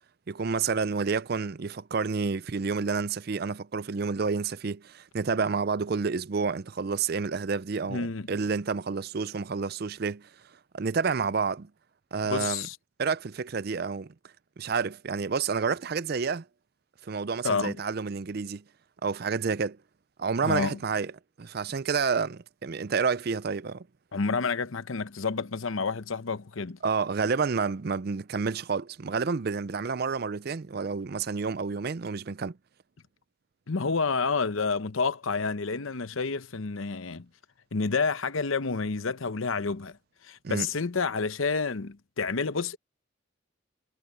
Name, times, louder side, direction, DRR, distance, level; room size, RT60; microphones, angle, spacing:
voice 1, 0.3-10.3 10.7-11.7 12.1-12.7 13.0-14.1 14.6-16.4 17.0-18.6 19.0-19.8 20.2-21.1 21.4-23.9 26.8-32.6 40.4-40.7, right 5 dB, 50° right, 0.5 m, -29 dB
voice 2, 7.9-8.3 12.2-12.8 17.4-17.8 20.4-20.8 24.1-26.8 33.7-37.3 37.7-40.0 40.2-42.8, left 4 dB, 80° left, 0.9 m, -29 dB
head